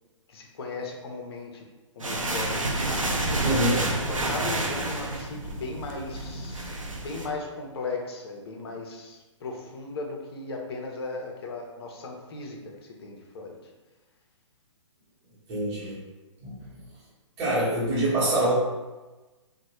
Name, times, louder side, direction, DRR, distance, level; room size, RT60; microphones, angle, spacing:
voice 1, 0.3-1.6 2.0-2.9 4.0-13.6, left 3 dB, 50° left, 1 dB, 0.7 m, -37 dB
sound 1, 2.0-7.3, right 1 dB, 90° right, 0.5 m, -29 dB
voice 2, 3.4-3.8 15.5-16.0 16.4-16.8 17.4-18.5, right 1 dB, 30° right, -9 dB, 1.0 m, -25 dB
3.0 x 2.2 x 2.9 m, 1.2 s
figure-of-eight pair, 125°, 16 cm